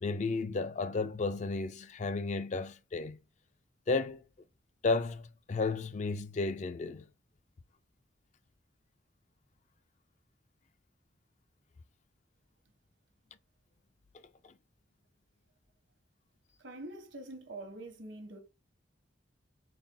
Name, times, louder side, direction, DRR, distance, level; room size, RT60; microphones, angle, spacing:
voice 1, 0.0-3.2 3.9-4.2 4.8-7.0 14.4-14.5, left 3 dB, 40° left, 0.3 m, -33 dB
voice 2, 16.6-18.4, right 2 dB, 75° right, 1.0 m, -45 dB
3.9 x 2.0 x 3.9 m
head